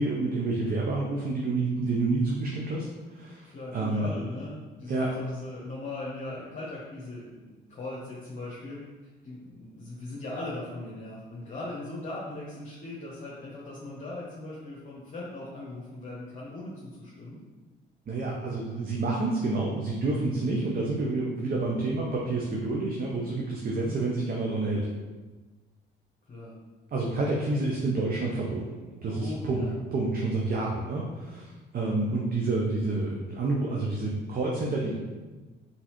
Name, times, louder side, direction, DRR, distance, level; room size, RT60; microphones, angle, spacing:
voice 1, 0.0-2.8 3.1-4.1 4.9-5.1 18.1-24.9 26.9-29.6 29.9-34.9, right 2 dB, 45° right, -2 dB, 0.7 m, -29 dB
voice 2, 3.4-17.4 23.7-24.0 26.2-26.5 27.1-27.2 29.1-29.7, left 2 dB, 40° left, -6 dB, 1.0 m, -39 dB
4.0 x 3.9 x 3.0 m, 1.3 s
cardioid pair, 90°, 20 cm